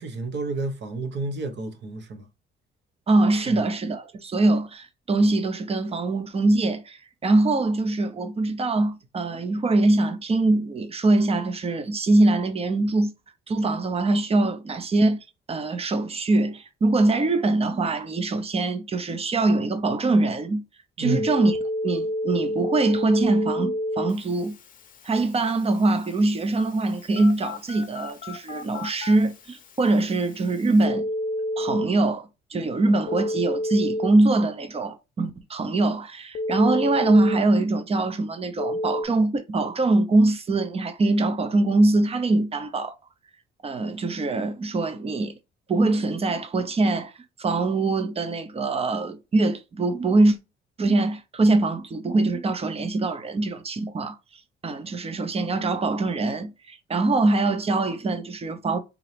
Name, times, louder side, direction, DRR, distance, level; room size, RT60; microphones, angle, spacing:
voice 1, 0.0-2.2 3.4-3.6 21.0-21.3, right 2 dB, 60° right, 1.1 m, -30 dB
voice 2, 3.1-13.1 13.5-15.2 15.5-20.6 21.0-21.6 21.8-24.6 25.0-31.1 31.6-42.9 43.6-45.4 45.7-47.1 47.4-50.4 50.8-54.2 54.6-58.8, right 2 dB, 30° right, 0.7 m, -23 dB
Telephone, 21.0-31.8 33.1-34.1 36.3-37.4 38.6-39.0, left 1 dB, 45° left, 0.7 m, -30 dB
3.7 x 2.9 x 3.3 m
cardioid pair, 90°, 20 cm